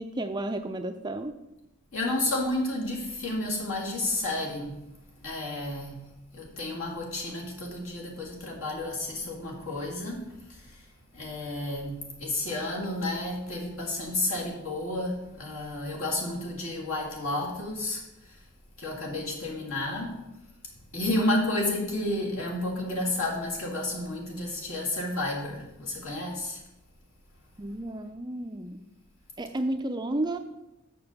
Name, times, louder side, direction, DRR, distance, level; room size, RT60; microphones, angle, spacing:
voice 1, 0.0-1.4 27.6-28.8 29.4-30.4, right 1 dB, 20° right, 7 dB, 0.4 m, -32 dB
voice 2, 1.9-4.8 5.2-6.0 6.3-10.7 11.1-18.0 18.8-20.2 20.9-26.6, left 1 dB, 65° left, -2 dB, 2.3 m, -31 dB
6.9 x 6.2 x 6.8 m, 0.92 s
head